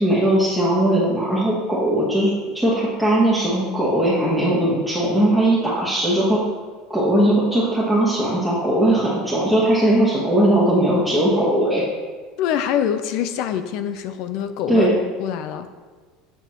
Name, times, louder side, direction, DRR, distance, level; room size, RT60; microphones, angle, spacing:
voice 1, 0.0-6.4 6.9-11.8 14.7-14.9, right 1 dB, ahead, -9 dB, 1.4 m, -19 dB
voice 2, 12.4-14.9 15.2-15.7, left 9 dB, 60° left, 10 dB, 0.5 m, -24 dB
7.6 x 6.9 x 3.0 m, 1.5 s
supercardioid pair, 135°, 0 cm